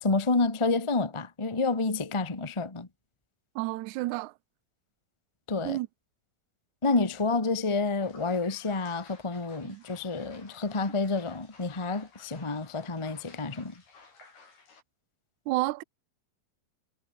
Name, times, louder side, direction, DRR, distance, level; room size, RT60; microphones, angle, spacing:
voice 1, 0.0-2.9 5.5-5.8 6.8-13.7, left 3 dB, 35° left, 0.4 m, -29 dB
voice 2, 3.5-4.3 5.6-5.9 9.6-9.8 15.5-15.8, right 19 dB, 85° right, 1.7 m, -30 dB
sound 1, 8.0-14.8, left 4 dB, 80° left, 9.3 m, -55 dB
omnidirectional pair, 4.3 m